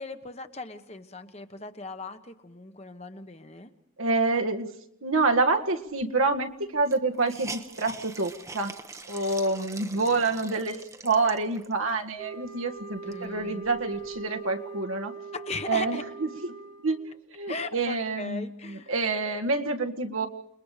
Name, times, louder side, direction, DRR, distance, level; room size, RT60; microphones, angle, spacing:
voice 1, 0.0-3.7 9.6-9.7 9.9-10.4 13.0-13.6 15.3-16.0 17.5-18.9, left 3 dB, 30° left, 8 dB, 1.2 m, -38 dB
voice 2, 4.0-4.7 5.0-8.7 9.1-15.1 15.7-16.3 16.8-17.0 17.3-20.3, right 3 dB, 80° right, 5 dB, 1.8 m, -27 dB
Hiss, 6.0-6.1 6.3-6.4 6.8-11.9 12.4-12.5 12.9-14.3, right 3 dB, 15° right, 0.9 m, -44 dB
sound 1, 12.2-17.1, right 5 dB, 30° right, 1.2 m, -42 dB
29.0 x 21.5 x 5.0 m, 0.75 s
head